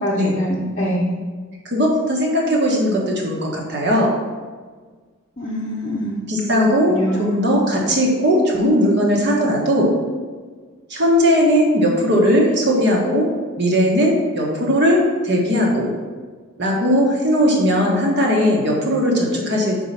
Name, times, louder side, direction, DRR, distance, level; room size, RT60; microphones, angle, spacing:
voice 1, 0.0-1.1 5.4-6.2 6.5-7.4, equal, 30° left, -5 dB, 0.7 m, -24 dB
voice 2, 1.6-4.1 6.3-9.9 10.9-13.3 13.6-15.9 16.6-19.8, equal, 50° right, -1 dB, 1.4 m, -18 dB
4.8 x 4.7 x 5.7 m, 1.5 s
head